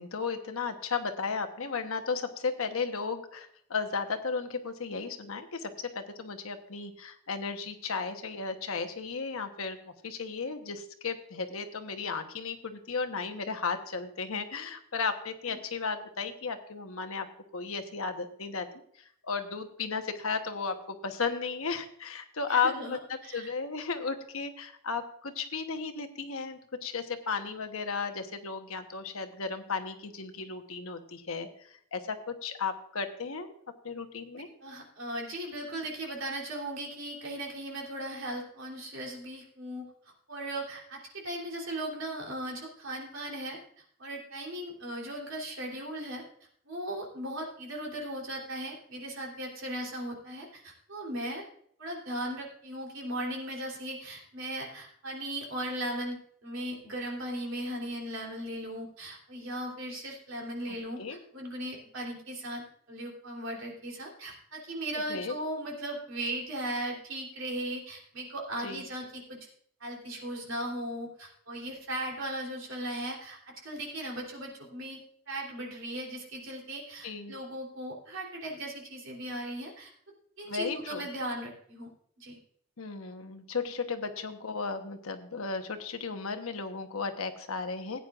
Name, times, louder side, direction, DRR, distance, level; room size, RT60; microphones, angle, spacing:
voice 1, 0.0-9.8 10.0-17.3 17.5-18.7 19.0-31.5 31.9-33.5 33.8-34.5 60.7-61.2 65.1-65.3 68.6-68.8 77.0-77.3 80.5-81.1 82.8-88.1, left 5 dB, 80° left, 7 dB, 1.1 m, -34 dB
voice 2, 22.5-23.5 34.4-43.6 44.0-46.2 46.7-51.4 51.8-69.4 69.8-75.0 75.3-79.9 80.4-81.9 82.2-82.4, right 1 dB, 65° right, -1 dB, 3.4 m, -37 dB
16.5 x 9.3 x 2.5 m, 0.66 s
head